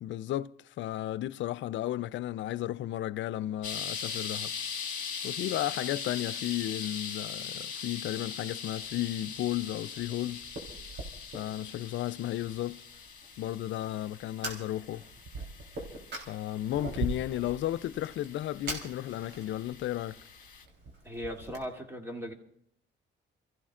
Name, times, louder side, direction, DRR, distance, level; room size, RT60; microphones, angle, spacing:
voice 1, 0.0-4.5 5.2-10.4 11.3-12.8 13.4-15.1 16.3-20.2, left 13 dB, 70° left, 0.5 m, -34 dB
sound 1, 3.6-20.6, left 7 dB, 40° left, 1.8 m, -41 dB
Fire, 8.7-21.6, right 2 dB, 65° right, 3.6 m, -43 dB
voice 2, 21.0-22.3, equal, 10° right, 2.7 m, -38 dB
29.0 x 15.0 x 2.5 m
cardioid pair, 90°, 20 cm